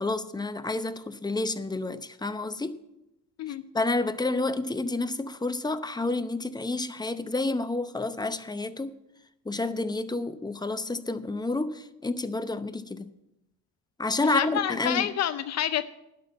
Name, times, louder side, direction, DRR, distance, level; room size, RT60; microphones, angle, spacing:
voice 1, 0.0-2.8 3.7-9.0 9.4-13.1 14.0-15.1, left 2 dB, 15° left, 0.7 m, -29 dB
voice 2, 14.3-15.8, left 10 dB, 60° left, 0.6 m, -28 dB
11.0 x 6.1 x 8.4 m
cardioid pair, 90°, 30 cm